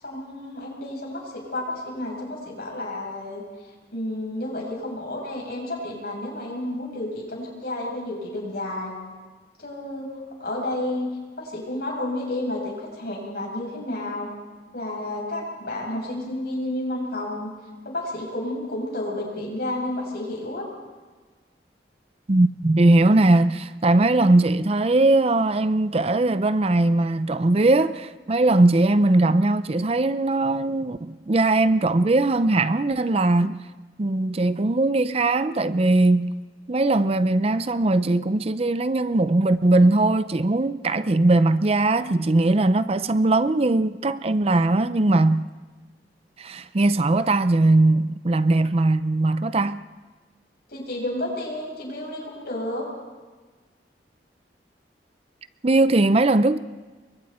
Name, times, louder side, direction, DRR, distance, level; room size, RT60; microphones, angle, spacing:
voice 1, 0.0-3.4 3.9-8.9 9.6-11.1 11.4-14.3 14.7-17.5 17.8-20.6 50.7-52.8, left 1 dB, 60° left, 7.7 m, -31 dB
voice 2, 22.3-33.6 34.0-36.3 36.7-45.5 46.4-49.8 55.6-56.6, right 2 dB, 35° right, 0.5 m, -20 dB
29.0 x 23.5 x 4.4 m
head